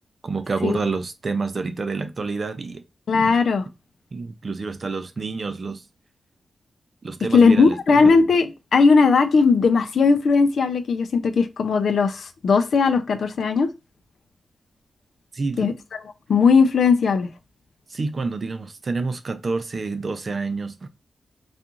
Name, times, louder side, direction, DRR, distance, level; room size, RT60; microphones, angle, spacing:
voice 1, 0.2-2.8 3.2-3.4 4.1-5.8 7.0-7.8 15.3-15.7 17.9-20.9, right 4 dB, 45° right, 0.4 m, -28 dB
voice 2, 3.1-3.6 7.3-13.7 15.6-15.7 16.3-17.3, left 4 dB, 75° left, 0.4 m, -18 dB
2.5 x 2.4 x 2.9 m
wide cardioid pair, 85°, 0 cm